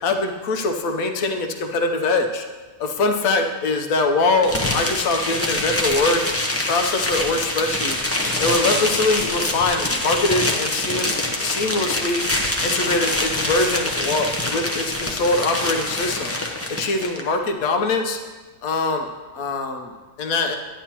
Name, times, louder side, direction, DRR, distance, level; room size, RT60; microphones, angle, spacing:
voice 1, 0.0-2.4 2.8-6.2 6.7-8.0 8.4-12.2 12.6-16.3 16.7-18.2 18.6-19.1 19.3-20.6, left 3 dB, 70° left, 5 dB, 1.2 m, -23 dB
sound 1, 4.4-17.2, left 1 dB, 15° left, 0.5 m, -25 dB
10.0 x 10.0 x 2.9 m, 1.3 s
omnidirectional pair, 1.6 m